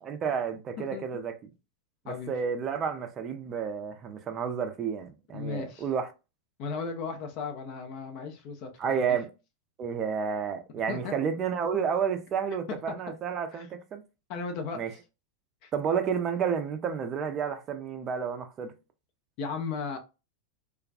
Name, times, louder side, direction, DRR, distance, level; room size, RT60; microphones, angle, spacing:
voice 1, 0.0-1.5 2.0-6.1 8.8-9.3 9.8-14.0 14.7-14.9 15.7-18.7, right 7 dB, 30° right, 0.4 m, -31 dB
voice 2, 5.3-5.9 6.6-9.2 10.9-11.1 13.5-13.7 14.3-15.0 15.6-15.7 19.4-20.0, left 5 dB, 45° left, 0.4 m, -36 dB
2.3 x 2.2 x 2.4 m
figure-of-eight pair, 90°, 0 cm